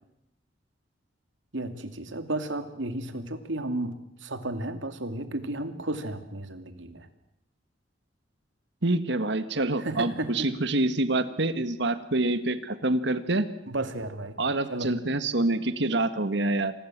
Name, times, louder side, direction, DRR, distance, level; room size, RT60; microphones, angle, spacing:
voice 1, 1.5-4.0 4.2-7.1 9.8-10.5 13.7-14.4 14.7-14.9, right 1 dB, 85° right, 9 dB, 2.5 m, -33 dB
voice 2, 8.8-13.5 14.4-16.7, right 2 dB, 65° right, 11 dB, 1.7 m, -26 dB
27.0 x 20.5 x 7.5 m, 0.79 s
head